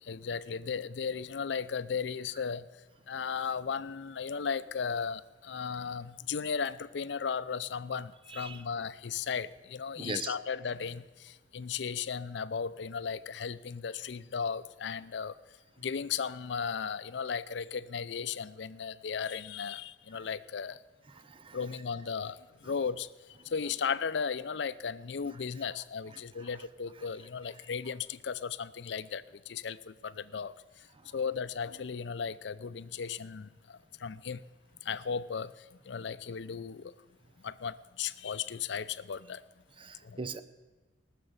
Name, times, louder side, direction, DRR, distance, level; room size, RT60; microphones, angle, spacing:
voice 1, 0.0-2.7 3.1-15.4 15.8-20.8 21.5-23.1 23.4-30.9 31.1-34.4 34.8-36.9 37.4-39.4 40.0-40.2, left 6 dB, 70° left, 15 dB, 0.5 m, -36 dB
voice 2, 8.3-8.6 10.0-10.4 21.1-21.6 26.1-26.5 39.8-40.4, right 3 dB, 30° right, 12 dB, 0.7 m, -41 dB
19.0 x 6.6 x 8.0 m, 1.3 s
head